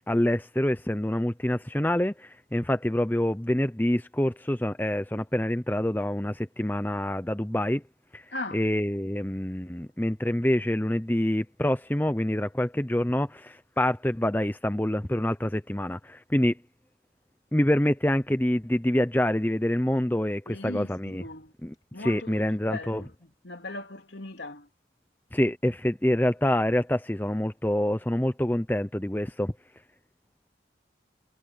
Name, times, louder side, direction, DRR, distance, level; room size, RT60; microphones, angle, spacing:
voice 1, 0.0-7.8 8.1-8.2 8.5-16.5 17.5-21.2 21.6-23.0 25.3-29.5, left 1 dB, 10° left, 0.6 m, -26 dB
voice 2, 8.3-8.7 20.5-21.5 21.9-24.7, left 2 dB, 70° left, 3.4 m, -39 dB
head